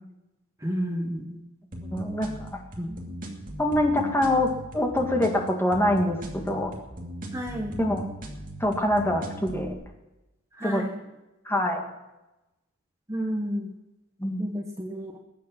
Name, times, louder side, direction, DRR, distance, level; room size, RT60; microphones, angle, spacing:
voice 1, 0.6-1.4 2.8-3.0 7.3-7.8 10.6-10.9 13.1-13.7 14.4-15.2, equal, 15° right, 2 dB, 1.2 m, -31 dB
sound 1, 1.7-9.7, right 1 dB, 40° right, 2.6 m, -38 dB
voice 2, 1.8-2.6 3.6-6.7 7.8-8.1 8.6-9.8 10.6-10.8 11.5-11.8 14.2-14.4, left 1 dB, 10° left, 2 dB, 2.0 m, -25 dB
21.5 x 8.4 x 6.0 m, 0.99 s
head